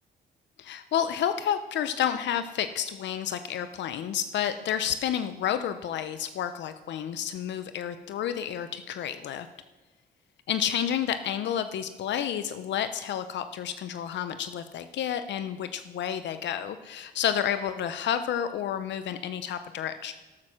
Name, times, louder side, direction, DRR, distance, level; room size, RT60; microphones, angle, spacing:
voice 1, 0.6-9.5 10.5-20.1, left 9 dB, 75° left, 10 dB, 0.6 m, -30 dB
12.0 x 8.9 x 6.2 m, 1.2 s
cardioid pair, 75°, 19 cm